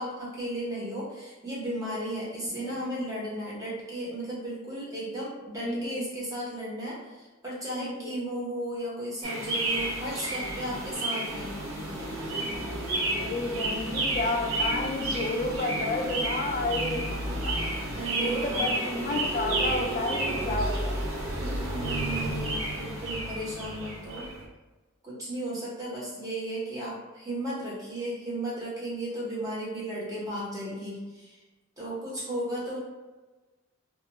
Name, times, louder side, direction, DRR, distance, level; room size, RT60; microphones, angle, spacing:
voice 1, 0.0-11.5 17.2-18.7 21.4-24.3 25.0-31.4 31.8-32.8, right 1 dB, 15° right, -7 dB, 0.9 m, -35 dB
voice 2, 2.4-2.7 5.6-6.0 7.8-8.1 13.1-17.5 18.2-21.1, left 2 dB, 40° left, 2 dB, 0.4 m, -31 dB
sound 1, 9.2-24.4, right 1 dB, 75° right, 0.7 m, -31 dB
2.3 x 2.2 x 2.9 m, 1.2 s
head